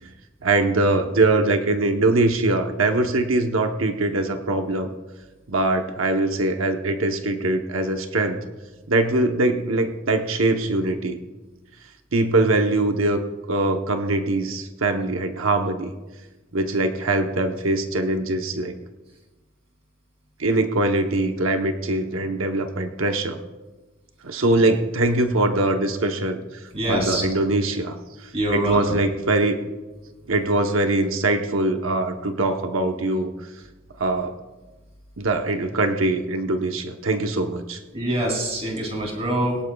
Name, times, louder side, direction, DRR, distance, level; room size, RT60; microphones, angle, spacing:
voice 1, 0.4-4.9 5.5-8.4 8.9-11.2 12.1-15.9 16.5-18.7 20.4-23.4 24.2-29.6 30.3-33.3 34.0-34.3 35.2-37.8, right 2 dB, 75° right, 5 dB, 0.9 m, -22 dB
voice 2, 26.7-27.2 28.3-29.0 37.9-39.6, right 1 dB, 30° right, 0 dB, 3.0 m, -24 dB
22.5 x 11.0 x 2.3 m, 1.2 s
head